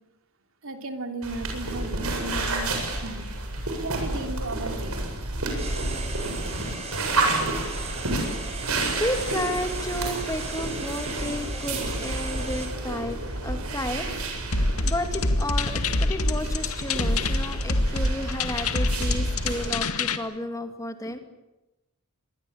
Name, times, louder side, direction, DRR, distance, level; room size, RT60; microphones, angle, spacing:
voice 1, 0.6-2.8 3.0-3.3 3.8-5.0 6.5-6.7, right 2 dB, 65° right, 5 dB, 3.1 m, -35 dB
sound 1, 1.2-19.7, right 2 dB, 80° right, 7.7 m, -30 dB
sound 2, 5.6-12.7, right 4 dB, 30° right, 7.3 m, -37 dB
voice 2, 8.6-14.1 14.4-21.2, left 1 dB, 15° left, 6 dB, 2.4 m, -32 dB
sound 3, 14.5-20.2, left 2 dB, 75° left, 2.0 m, -26 dB
26.5 x 22.0 x 8.7 m, 0.99 s
head